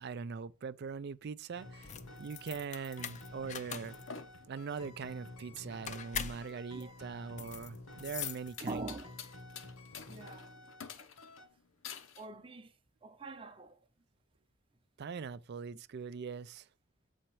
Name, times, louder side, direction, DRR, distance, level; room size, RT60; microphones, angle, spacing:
voice 1, 0.0-1.9 2.2-4.0 4.5-8.8 15.0-16.6, right 5 dB, 55° right, 0.4 m, -41 dB
sound 1, 1.5-10.9 11.2-11.5, left 2 dB, 85° left, 1.7 m, -52 dB
sound 2, 1.7-9.1, left 8 dB, 35° left, 0.5 m, -44 dB
sound 3, 4.0-12.3, left 6 dB, 65° left, 0.9 m, -51 dB
voice 2, 6.5-6.9 8.6-9.1 10.1-10.5 11.0-11.1 12.2-12.7 13.0-13.8, right 2 dB, 25° right, 0.7 m, -44 dB
7.7 x 4.3 x 4.6 m
head